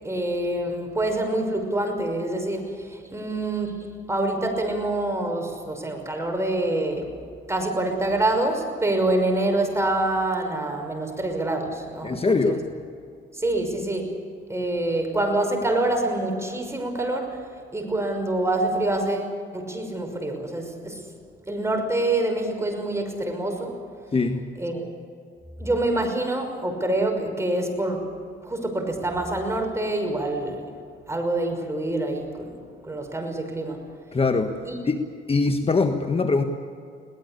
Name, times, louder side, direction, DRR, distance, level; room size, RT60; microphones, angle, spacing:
voice 1, 0.0-7.2 7.5-12.6 13.3-14.1 14.5-17.5 17.7-21.0 21.5-23.8 24.6-24.9 25.6-28.1 28.4-30.7 31.1-32.6 32.8-33.8 34.6-34.8, right 2 dB, 15° right, 4 dB, 5.8 m, -26 dB
voice 2, 12.0-12.6 24.1-24.4 34.1-34.6 34.8-35.0 35.3-36.4, left 3 dB, 30° left, 6 dB, 1.5 m, -22 dB
22.5 x 19.0 x 8.4 m, 2.3 s
cardioid pair, 90°, 20 cm